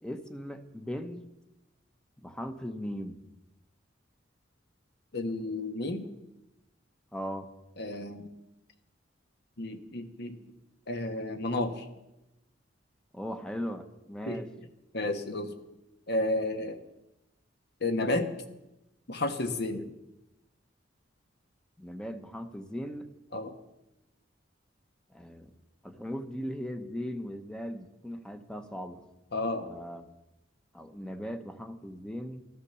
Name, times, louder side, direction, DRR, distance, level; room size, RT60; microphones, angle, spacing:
voice 1, 0.0-1.2 2.2-3.2 7.1-7.5 13.1-14.5 19.7-19.9 21.8-23.1 25.1-25.5 25.8-29.0 29.7-30.1 30.7-32.4, equal, 5° left, 8 dB, 0.9 m, -38 dB
voice 2, 5.1-6.1 7.8-8.3 9.6-10.4 10.9-11.8 14.3-14.4 14.9-15.5 16.1-16.8 17.8-18.3 19.1-19.8 23.3-23.5 29.3-29.7, left 2 dB, 60° left, 8 dB, 1.3 m, -31 dB
13.5 x 13.0 x 7.0 m, 0.94 s
head